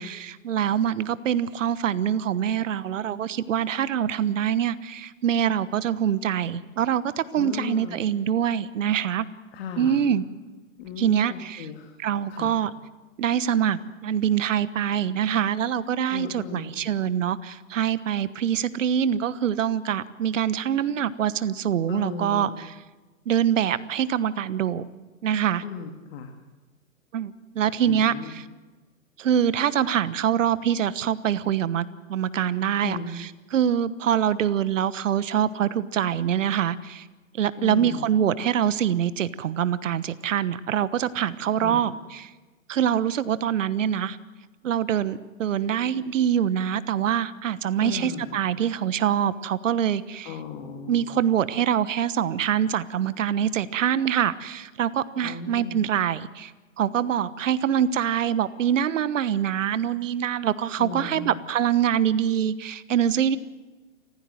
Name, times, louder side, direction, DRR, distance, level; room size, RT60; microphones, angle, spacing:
voice 1, 0.0-9.2 9.8-10.2 11.0-11.6 12.0-12.7 13.2-22.5 23.3-24.9 25.2-25.6 27.1-28.4 29.2-37.0 37.4-42.3 42.7-44.2 44.6-50.3 50.9-56.5 56.8-63.4, right 9 dB, 65° right, 15 dB, 1.2 m, -24 dB
voice 2, 7.3-8.0 9.5-10.0 10.8-12.0 12.3-12.5 16.1-16.7 21.9-22.6 25.6-26.3 27.9-28.3 32.8-33.2 37.6-38.1 41.6-41.9 47.8-48.4 50.2-51.1 55.2-55.8 60.8-61.4, left 5 dB, 45° left, 4 dB, 2.5 m, -36 dB
29.0 x 15.0 x 7.8 m, 1.3 s
hypercardioid pair, 135°, 41 cm